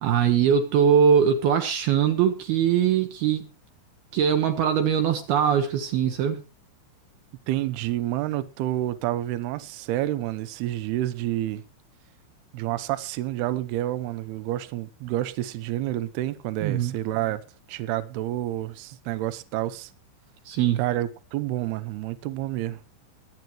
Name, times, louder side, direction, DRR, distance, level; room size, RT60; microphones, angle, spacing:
voice 1, 0.0-3.5 4.1-6.4 16.6-16.9 20.5-20.8, right 8 dB, 70° right, 2.6 m, -21 dB
voice 2, 7.5-11.6 12.5-17.4 17.7-19.9 20.8-22.8, right 14 dB, 85° right, 2.3 m, -29 dB
22.5 x 9.4 x 3.0 m
omnidirectional pair, 5.6 m